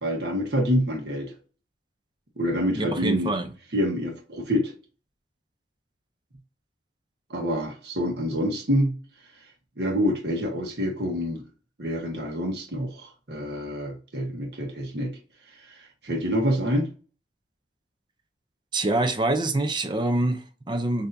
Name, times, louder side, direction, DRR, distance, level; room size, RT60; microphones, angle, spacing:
voice 1, 0.0-1.3 2.4-3.3 3.7-4.7 7.3-8.9 9.8-11.4 11.8-15.1 16.0-16.9, equal, 65° right, 1.2 m, -26 dB
voice 2, 2.8-3.5 18.7-21.1, right 2 dB, 25° right, 0.5 m, -25 dB
6.7 x 2.7 x 2.6 m
head